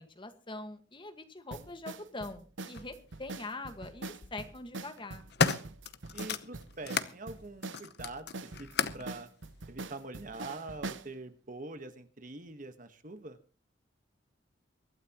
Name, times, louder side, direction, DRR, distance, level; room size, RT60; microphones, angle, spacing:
voice 1, 0.0-5.2, left 2 dB, 25° left, 7 dB, 1.6 m, -43 dB
sound 1, 1.5-11.1, right 3 dB, 85° right, 0.9 m, -43 dB
sound 2, 2.7-2.9 4.0-4.3 4.9-7.2 7.6-9.1 10.0-10.1, left 5 dB, 60° left, 0.9 m, -33 dB
voice 2, 6.1-9.3 9.7-13.4, right 2 dB, 45° right, 9 dB, 1.4 m, -44 dB
23.5 x 12.5 x 3.0 m, 0.36 s
head